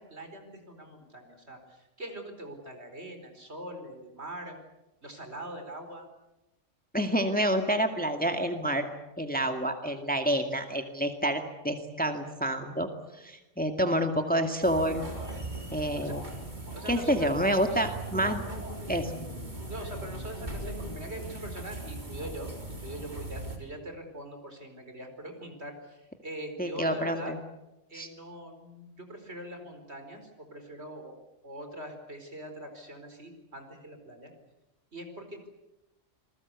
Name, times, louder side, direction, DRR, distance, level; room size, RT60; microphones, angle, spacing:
voice 1, 0.0-4.6 5.0-6.1 15.4-15.7 15.9-16.2 16.7-17.3 17.7-17.8 19.7-27.3 27.9-31.2 31.4-34.3 34.9-35.5, right 1 dB, 60° right, 6 dB, 4.9 m, -43 dB
voice 2, 6.9-8.9 9.2-12.9 13.1-15.1 15.7-16.2 16.9-18.4 18.9-19.2 26.6-27.4 27.9-28.1, equal, 5° left, 5 dB, 2.1 m, -28 dB
sound 1, 14.6-23.6, right 1 dB, 35° right, 3.8 m, -39 dB
27.5 x 21.0 x 8.3 m, 0.97 s
omnidirectional pair, 1.3 m